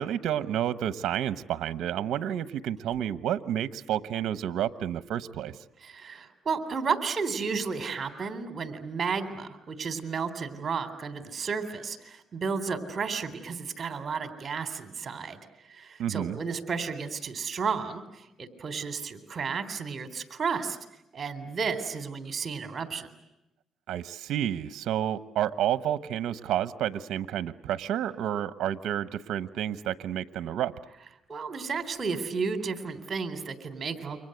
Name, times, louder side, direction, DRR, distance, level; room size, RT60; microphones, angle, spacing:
voice 1, 0.0-5.6 16.0-16.4 23.9-30.7, right 10 dB, 80° right, 14 dB, 1.0 m, -30 dB
voice 2, 5.8-15.4 15.7-20.8 21.1-23.1 31.3-34.2, right 5 dB, 40° right, 10 dB, 3.7 m, -32 dB
29.5 x 25.0 x 7.9 m, 0.88 s
cardioid pair, 90°, 0 cm